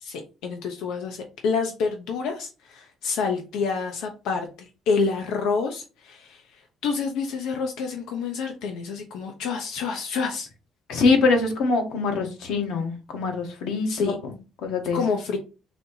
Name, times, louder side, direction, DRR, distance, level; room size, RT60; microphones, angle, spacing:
voice 1, 0.0-4.5 4.9-6.4 6.8-10.5 13.9-14.1 14.9-15.4, left 5 dB, 85° left, 3 dB, 0.7 m, -28 dB
voice 2, 10.9-14.3 14.6-15.0, left 4 dB, 70° left, 5 dB, 1.1 m, -23 dB
4.2 x 2.8 x 4.0 m, 0.32 s
cardioid pair, 170°, 0 cm